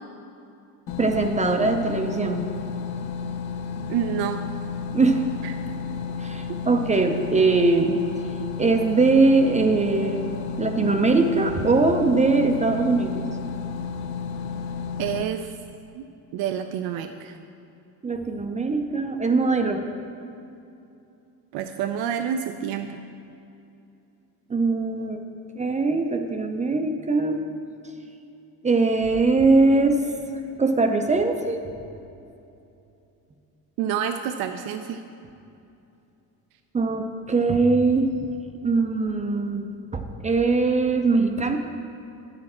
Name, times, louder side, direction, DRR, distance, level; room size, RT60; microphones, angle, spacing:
sound 1, 0.9-15.2, left 6 dB, 85° left, 0.6 m, -32 dB
voice 1, 1.0-2.5 4.9-5.2 6.2-8.0 8.6-10.3 10.6-13.2 18.0-19.8 24.5-25.2 25.6-27.5 28.6-30.0 30.6-31.7 36.7-38.1 38.6-39.7 39.9-41.6, right 3 dB, 20° right, 5 dB, 0.4 m, -21 dB
voice 2, 3.9-4.4 15.0-15.5 15.9-16.1 16.3-17.4 21.5-23.0 33.8-35.0, right 8 dB, 75° right, 7 dB, 0.5 m, -28 dB
9.5 x 6.5 x 4.3 m, 2.7 s
cardioid pair, 120°, 37 cm